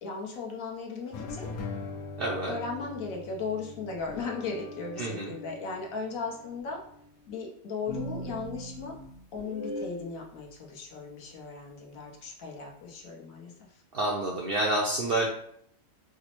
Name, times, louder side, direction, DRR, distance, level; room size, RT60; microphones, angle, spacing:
voice 1, 0.0-1.5 2.5-6.8 7.3-8.9 9.3-13.8, left 4 dB, 70° left, -1 dB, 1.2 m, -37 dB
sound 1, 1.1-7.3, left 3 dB, 90° left, 1.1 m, -42 dB
voice 2, 2.2-2.6 5.0-5.3 13.9-15.3, right 1 dB, 65° right, -2 dB, 0.6 m, -28 dB
sound 2, 7.9-10.1, equal, 35° left, 0.5 m, -38 dB
4.7 x 2.0 x 2.9 m, 0.69 s
omnidirectional pair, 1.5 m